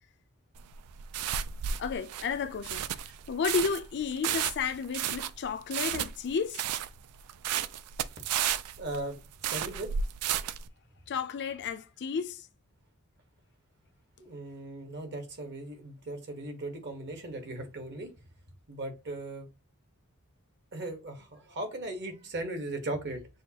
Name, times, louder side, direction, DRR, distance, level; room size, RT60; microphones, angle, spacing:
sound 1, 0.6-10.7, right 9 dB, 85° right, 0.3 m, -33 dB
voice 1, 1.8-2.8 3.3-6.6 11.1-12.5, left 5 dB, 50° left, 0.4 m, -32 dB
voice 2, 8.8-9.9 14.2-18.1 18.7-19.5 20.7-23.3, right 2 dB, 50° right, 1.1 m, -38 dB
6.3 x 2.3 x 2.8 m
head